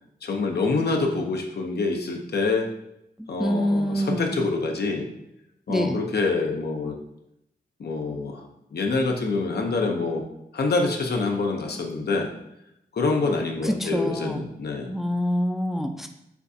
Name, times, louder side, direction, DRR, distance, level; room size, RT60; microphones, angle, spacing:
voice 1, 0.2-2.7 3.3-5.1 5.7-7.0 7.8-8.5 8.7-10.2 10.5-12.3 12.9-14.9, left 3 dB, 70° left, 2 dB, 0.7 m, -26 dB
voice 2, 3.2-4.4 5.7-6.0 13.6-14.4 14.9-16.1, equal, ahead, 5 dB, 0.5 m, -26 dB
6.9 x 2.3 x 2.6 m, 0.83 s
cardioid pair, 45°, 17 cm